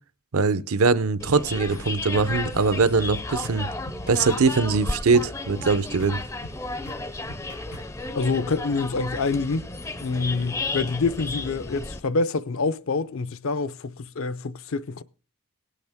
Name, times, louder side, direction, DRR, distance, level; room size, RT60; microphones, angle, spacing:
voice 1, 0.3-3.7 4.1-6.2, right 4 dB, 75° right, 0.7 m, -22 dB
sound 1, 1.2-12.0, left 2 dB, 15° left, 0.4 m, -33 dB
sound 2, 1.3-1.4 1.7-1.9 2.1-2.3 2.6-2.7 3.0-3.1 3.4-3.6 3.9-4.4 4.7-4.9 5.1-5.3 5.6-5.7 6.0-6.2 6.4-6.6 6.9-7.0 7.3-7.9, left 1 dB, 80° left, 4.2 m, -41 dB
voice 2, 8.1-9.7 10.0-15.0, left 4 dB, 65° left, 0.6 m, -26 dB
18.0 x 8.4 x 3.5 m
head